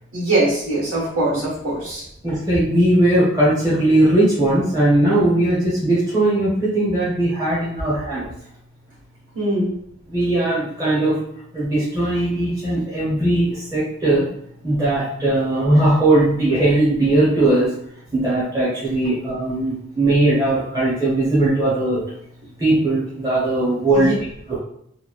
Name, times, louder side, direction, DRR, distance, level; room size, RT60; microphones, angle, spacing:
voice 1, 0.1-2.0 9.3-9.7 23.9-24.1, right 2 dB, 85° right, -6 dB, 1.4 m, -22 dB
voice 2, 2.2-8.3 10.1-11.1 11.5-14.2 14.6-17.7 18.1-22.0 22.6-24.1 24.5-24.6, right 1 dB, 20° right, -10 dB, 0.8 m, -19 dB
3.0 x 2.2 x 2.4 m, 0.70 s
head